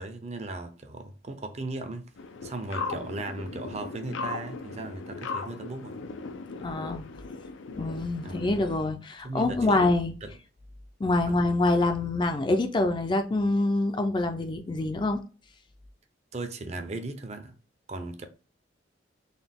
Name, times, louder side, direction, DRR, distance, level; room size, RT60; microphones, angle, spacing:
voice 1, 0.0-2.1 2.4-6.0 8.2-8.6 9.2-9.8 10.2-10.3 11.3-11.4 16.3-17.5 17.9-18.3, right 2 dB, 35° right, 0.5 m, -37 dB
sound 1, 2.2-8.8, left 4 dB, 90° left, 0.4 m, -38 dB
voice 2, 6.6-7.1 7.7-10.1 11.0-15.2, left 2 dB, 25° left, 0.4 m, -25 dB
3.9 x 2.2 x 3.5 m
head